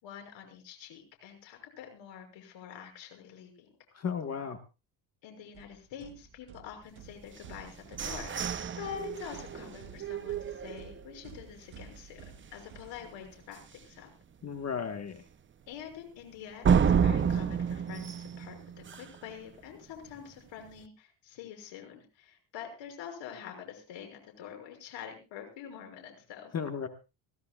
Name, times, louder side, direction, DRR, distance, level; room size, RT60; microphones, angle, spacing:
voice 1, 0.0-3.7 5.2-12.2 12.5-14.1 15.7-18.6 18.9-26.5, left 8 dB, 85° left, 3 dB, 6.3 m, -46 dB
voice 2, 3.9-4.6 14.4-15.2 26.5-26.9, left 6 dB, 35° left, 6 dB, 1.5 m, -34 dB
sound 1, 5.5-13.5, right 7 dB, 80° right, 1.9 m, -53 dB
sound 2, 7.4-11.2 11.7-11.8 12.2-12.6 13.0-13.1 13.5-13.6 16.6-19.3, right 7 dB, 25° right, 0.7 m, -30 dB
23.5 x 16.0 x 2.4 m, 0.30 s
cardioid pair, 125°, 44 cm